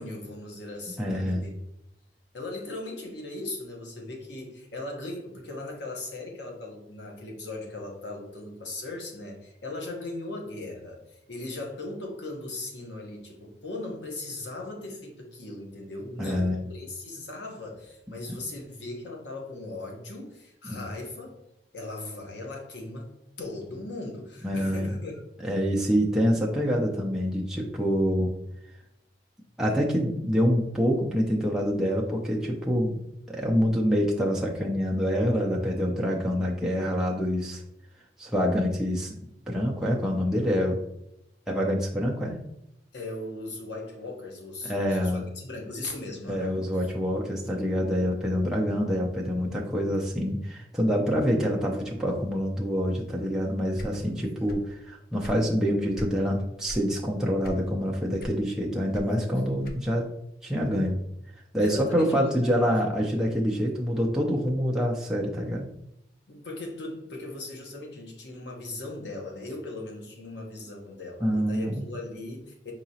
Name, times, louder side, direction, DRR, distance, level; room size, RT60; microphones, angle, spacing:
voice 1, 0.0-1.5 2.3-21.4 21.7-25.2 42.9-46.6 54.1-54.6 59.0-59.3 61.6-62.3 62.6-62.7 66.3-72.7, left 2 dB, 80° left, 1 dB, 0.9 m, -38 dB
voice 2, 1.0-1.5 16.2-16.6 20.6-20.8 24.4-24.9 25.4-28.3 29.6-33.0 33.3-37.6 38.2-39.2 39.5-40.8 41.5-42.4 44.6-45.3 46.3-54.6 55.1-60.1 60.4-61.0 61.5-65.7 71.2-71.8, equal, 5° right, -3 dB, 0.4 m, -26 dB
sound 1, 53.7-54.8 55.0-56.2 56.6-56.9 57.4-57.9 58.2-60.1, equal, 55° left, 0.4 m, -40 dB
4.8 x 2.8 x 2.8 m, 0.83 s
head